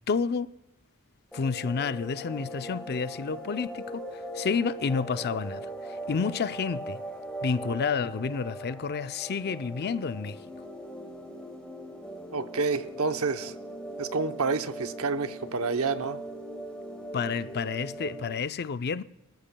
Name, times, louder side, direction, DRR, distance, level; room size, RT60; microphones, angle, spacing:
voice 1, 0.1-0.5 1.3-7.0 7.4-10.4 17.1-19.0, left 5 dB, 50° left, 0.5 m, -30 dB
sound 1, 1.3-18.4, right 1 dB, 5° left, 1.8 m, -40 dB
voice 2, 12.3-13.5 14.0-16.2, right 4 dB, 80° right, 0.8 m, -29 dB
24.5 x 14.0 x 2.2 m
head